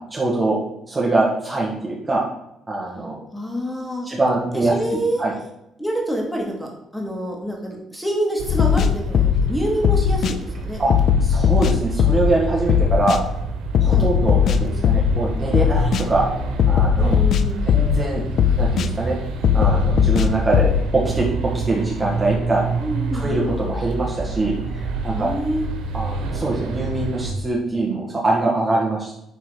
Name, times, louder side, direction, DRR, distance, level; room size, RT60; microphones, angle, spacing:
voice 1, 0.1-0.6 0.9-2.3 2.7-3.2 4.1-4.8 5.2-5.3 10.8-10.9 11.2-13.2 13.8-16.3 16.7-17.2 17.7-18.2 18.6-19.2 19.5-20.7 20.9-22.6 23.1-25.3 25.9-29.1, right 2 dB, 20° right, -3 dB, 1.7 m, -23 dB
voice 2, 3.3-4.1 4.5-5.3 5.8-10.8 13.9-14.1 17.0-17.7 22.8-23.3 25.1-25.7, right 1 dB, 5° left, -1 dB, 2.4 m, -27 dB
sound 1, 8.4-27.3, right 3 dB, 90° right, 1.5 m, -28 dB
sound 2, 8.5-9.5 9.8-10.3 10.9-12.4 12.7-13.2 13.7-15.2 15.5-16.0 16.6-18.1 18.4-18.9 19.4-20.8, left 8 dB, 55° left, 0.6 m, -18 dB
11.0 x 4.1 x 5.0 m, 0.82 s
cardioid pair, 120°, 0 cm